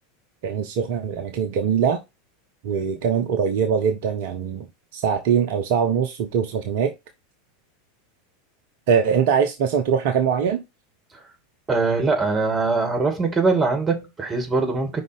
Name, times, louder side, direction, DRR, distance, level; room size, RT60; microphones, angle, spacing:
voice 1, 0.4-2.0 2.6-4.7 4.9-6.9 8.9-10.6, right 7 dB, 55° right, 0.9 m, -22 dB
voice 2, 11.7-15.0, right 3 dB, 15° right, 2.6 m, -22 dB
5.4 x 3.9 x 5.5 m
figure-of-eight pair, 85°, 0 cm